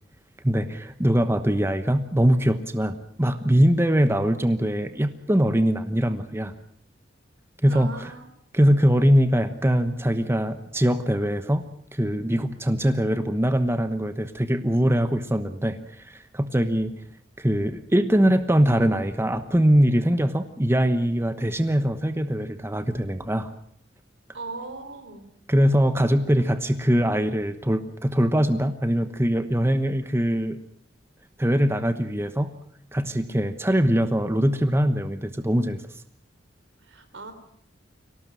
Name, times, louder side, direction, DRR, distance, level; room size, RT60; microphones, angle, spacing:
voice 1, 0.4-6.5 7.6-7.9 8.5-11.7 11.9-16.9 17.4-23.5 25.5-30.6 31.4-32.5 32.9-35.8, equal, 15° right, 10 dB, 1.1 m, -22 dB
voice 2, 7.7-8.2 24.3-25.3 36.8-37.3, right 2 dB, 85° right, 9 dB, 3.9 m, -38 dB
24.0 x 18.0 x 7.6 m, 0.63 s
head